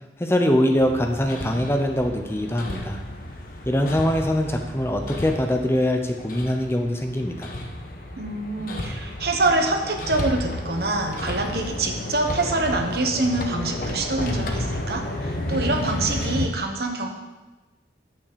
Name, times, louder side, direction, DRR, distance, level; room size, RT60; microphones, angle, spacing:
voice 1, 0.2-3.0 3.7-7.5, left 1 dB, 15° left, 4 dB, 0.7 m, -23 dB
Hammer, 0.8-16.4, left 1 dB, 50° left, 1.1 m, -32 dB
voice 2, 8.2-17.1, right 2 dB, 60° right, 3 dB, 1.2 m, -25 dB
9.2 x 5.8 x 6.9 m, 1.1 s
head